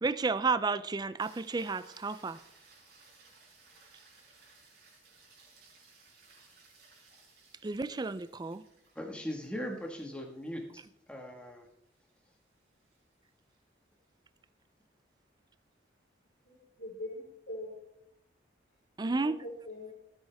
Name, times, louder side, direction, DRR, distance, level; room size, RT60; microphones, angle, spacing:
voice 1, 0.0-2.4 7.6-8.6 19.0-19.4, right 4 dB, 20° right, 14 dB, 0.4 m, -32 dB
sound 1, 1.2-13.6 18.1-18.2, right 4 dB, 55° right, 5.4 m, -61 dB
voice 2, 8.9-10.8 11.1-11.7, equal, 5° left, 1 dB, 1.6 m, -39 dB
voice 3, 16.5-17.7 19.0-19.9, left 1 dB, 85° left, -5 dB, 3.5 m, -43 dB
19.5 x 8.9 x 3.5 m, 0.77 s
head